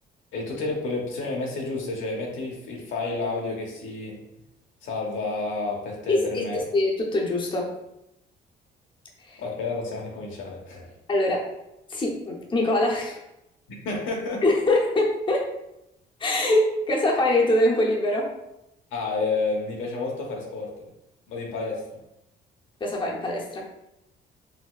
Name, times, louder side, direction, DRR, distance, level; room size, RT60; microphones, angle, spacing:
voice 1, 0.3-4.2 4.8-6.6 9.4-10.9 13.7-14.4 18.9-20.7 21.3-22.0, left 3 dB, 80° left, -1 dB, 0.8 m, -30 dB
voice 2, 6.1-7.7 9.2-9.4 11.1-11.5 11.9-13.2 14.4-15.5 16.2-18.3 22.8-23.7, left 1 dB, 25° left, -1 dB, 0.7 m, -23 dB
4.0 x 2.1 x 2.3 m, 0.86 s
cardioid pair, 90°, 20 cm